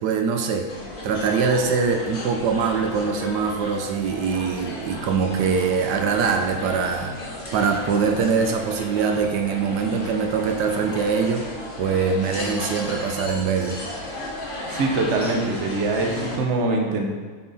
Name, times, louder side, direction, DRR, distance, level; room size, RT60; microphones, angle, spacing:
voice 1, 0.0-0.7 1.0-7.1 7.5-11.5 11.8-13.8, right 5 dB, 80° right, 4 dB, 1.2 m, -23 dB
sound 1, 0.7-16.4, left 1 dB, 40° left, 0.9 m, -34 dB
voice 2, 14.7-17.1, right 3 dB, 50° right, 1 dB, 1.0 m, -23 dB
8.4 x 3.8 x 4.1 m, 1.5 s
omnidirectional pair, 1.8 m